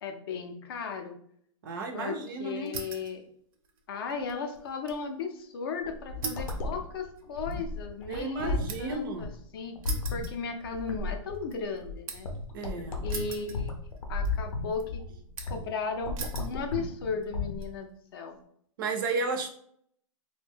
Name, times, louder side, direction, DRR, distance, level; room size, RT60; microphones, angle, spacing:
voice 1, 0.0-1.1 1.9-3.3 3.9-9.8 10.1-12.3 13.0-13.7 14.1-15.0 15.4-18.4, left 5 dB, 45° left, 5 dB, 0.4 m, -36 dB
voice 2, 1.6-2.7 8.1-9.3 12.5-13.1 18.8-19.5, right 3 dB, 40° right, 5 dB, 0.4 m, -33 dB
sound 1, 2.7-3.2 3.5-5.1 5.4-5.5 6.2-9.1 9.8-11.0 11.3-12.4 13.1-14.0 14.2-14.8 15.4-15.7 16.2-16.6 17.2-17.7, right 5 dB, 85° right, 0.6 m, -41 dB
sound 2, 5.8-17.7, left 3 dB, 85° left, 0.6 m, -35 dB
2.5 x 2.1 x 3.4 m, 0.65 s
hypercardioid pair, 160°, 17 cm